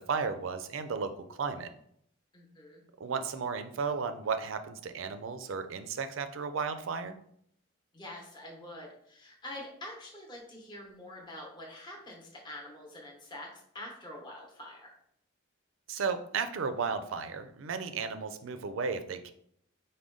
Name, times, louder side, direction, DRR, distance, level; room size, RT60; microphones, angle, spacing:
voice 1, 0.0-1.7 3.0-7.2 15.9-19.3, right 5 dB, 70° right, 9 dB, 0.4 m, -34 dB
voice 2, 2.3-2.8 7.9-14.9, left 1 dB, 20° left, -2 dB, 0.8 m, -46 dB
4.9 x 2.2 x 3.7 m, 0.69 s
head